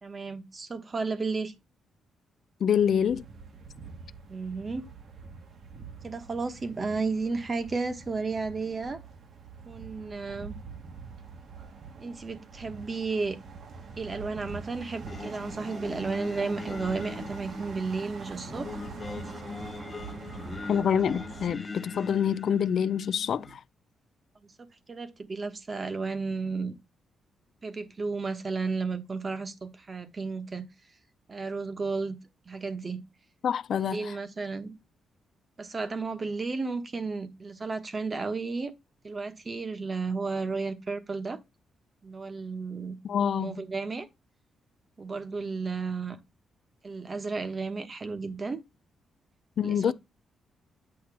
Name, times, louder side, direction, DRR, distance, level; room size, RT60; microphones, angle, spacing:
voice 1, 0.0-1.5 4.3-4.9 6.0-9.0 9.6-10.5 12.0-13.4 14.0-18.8 24.4-24.5 24.9-26.8 27.6-30.7 31.3-32.2 32.5-33.0 33.7-34.7 35.6-38.7 39.0-41.4 42.0-43.0 43.3-44.1 45.0-46.2 46.8-48.6 49.6-49.9, right 4 dB, 25° right, 1.1 m, -33 dB
voice 2, 2.6-3.3 20.7-23.6 33.4-34.2 43.0-43.6 49.6-49.9, left 8 dB, 55° left, 0.3 m, -26 dB
sound 1, 2.8-21.5, right 5 dB, 50° right, 1.2 m, -44 dB
Singing, 15.1-23.5, left 4 dB, 25° left, 1.3 m, -41 dB
8.6 x 2.9 x 6.0 m
cardioid pair, 145°, 0 cm